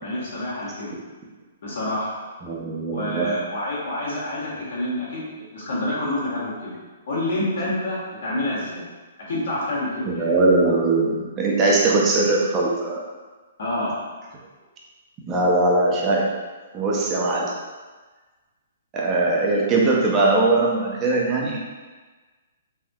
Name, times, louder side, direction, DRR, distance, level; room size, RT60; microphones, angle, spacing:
voice 1, 0.0-1.0 1.6-2.2 2.9-5.3 5.5-6.8 7.1-8.9 9.3-10.3 13.6-14.0, left 1 dB, 65° left, -7 dB, 1.3 m, -27 dB
voice 2, 2.4-3.3 10.1-13.0 15.3-16.3 16.7-17.5 18.9-21.6, right 2 dB, 25° right, -3 dB, 0.5 m, -20 dB
3.4 x 2.5 x 2.3 m, 1.3 s
figure-of-eight pair, 125°, 0 cm